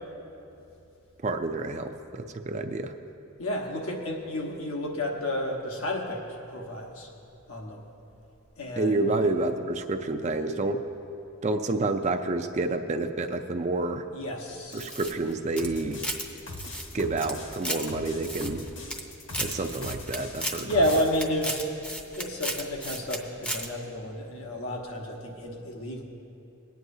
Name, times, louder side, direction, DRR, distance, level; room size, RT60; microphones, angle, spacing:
voice 1, 1.2-2.9 8.8-10.8 11.4-14.0 14.7-16.0 16.9-18.6 19.4-20.7, right 2 dB, 35° right, 7 dB, 0.4 m, -29 dB
voice 2, 3.4-7.1 7.5-7.8 8.6-9.3 14.1-15.0 20.6-21.6 22.1-26.0, left 1 dB, 80° left, 0 dB, 1.3 m, -31 dB
sound 1, 14.7-16.3 16.5-17.9 18.2-19.0 19.3-23.2 23.4-23.7, right 1 dB, 5° left, 0.6 m, -34 dB
sound 2, 15.6-21.2, left 2 dB, 60° left, 1.3 m, -41 dB
20.5 x 9.3 x 2.7 m, 2.7 s
head